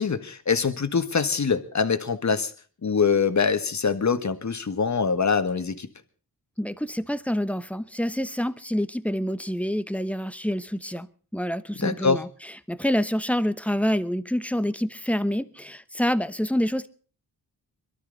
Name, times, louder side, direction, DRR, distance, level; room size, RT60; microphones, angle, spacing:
voice 1, 0.0-2.5 2.8-5.9 11.8-12.2, left 5 dB, 45° left, 1.7 m, -24 dB
voice 2, 6.6-11.1 11.3-16.9, equal, 5° left, 1.0 m, -27 dB
22.5 x 13.0 x 4.0 m
cardioid pair, 70°, 41 cm